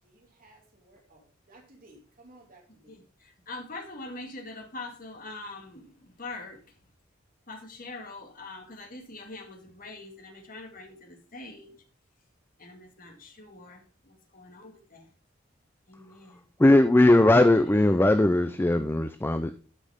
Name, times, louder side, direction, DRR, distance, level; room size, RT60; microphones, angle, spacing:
voice 1, 0.0-3.0, right 2 dB, 45° right, 2.7 m, -57 dB
voice 2, 2.9-6.6 7.5-11.8 12.6-15.1 15.9-16.4, left 2 dB, 45° left, 2.2 m, -43 dB
voice 3, 16.6-19.5, left 1 dB, 10° left, 0.4 m, -19 dB
12.0 x 5.4 x 3.6 m
head